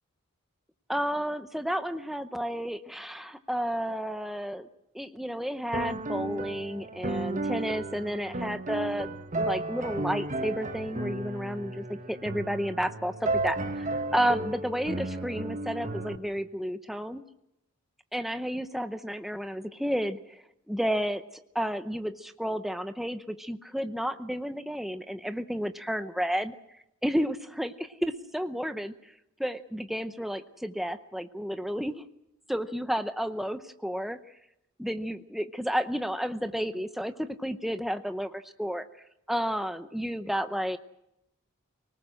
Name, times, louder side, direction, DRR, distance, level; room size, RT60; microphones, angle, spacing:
voice 1, 0.9-4.7 4.9-9.1 9.4-13.9 14.1-17.2 18.1-26.6 27.0-28.9 29.4-32.0 32.5-34.2 34.8-38.9 39.3-40.8, equal, ahead, 8 dB, 0.7 m, -31 dB
sound 1, 5.7-16.2, right 2 dB, 35° right, 1.1 m, -33 dB
25.0 x 19.0 x 6.4 m, 0.82 s
head